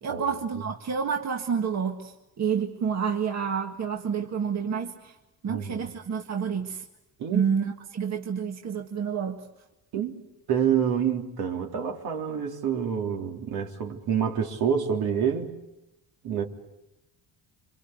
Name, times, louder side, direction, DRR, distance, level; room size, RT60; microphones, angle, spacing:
voice 1, 0.0-5.2 5.4-6.9 7.3-9.5 10.0-10.1, right 6 dB, 45° right, 1.9 m, -29 dB
voice 2, 5.5-5.9 7.2-7.4 9.9-10.2 10.5-15.5 16.2-16.4, right 8 dB, 70° right, 3.6 m, -27 dB
27.0 x 26.0 x 8.1 m
cardioid pair, 120°, 38 cm